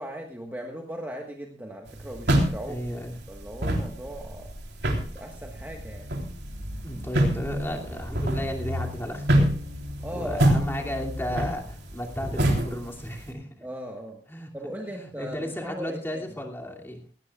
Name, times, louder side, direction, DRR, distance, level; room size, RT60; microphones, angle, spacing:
voice 1, 0.0-2.8 3.3-4.5 5.1-6.1 10.0-11.1 13.6-14.2 14.5-16.2, equal, 10° right, 1 dB, 1.4 m, -38 dB
sound 1, 1.9-13.3, right 1 dB, 65° right, 3.5 m, -27 dB
voice 2, 2.7-3.2 6.8-9.6 10.1-13.5 14.3-14.5 14.9-17.0, equal, 10° left, 1 dB, 2.5 m, -33 dB
18.0 x 18.0 x 2.4 m, 0.39 s
head